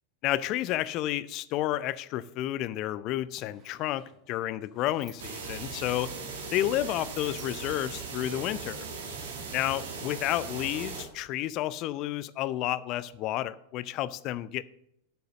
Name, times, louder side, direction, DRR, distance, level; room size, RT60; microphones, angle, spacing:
voice 1, 0.2-6.1 6.5-8.8 9.5-14.6, left 14 dB, 40° left, 0.5 m, -31 dB
Sliding door, 2.9-3.0 3.2-8.1, right 4 dB, 25° right, 2.3 m, -57 dB
sound 1, 5.2-11.0, right 4 dB, 60° right, 1.9 m, -39 dB
9.0 x 6.8 x 6.4 m
figure-of-eight pair, 90°, 0 cm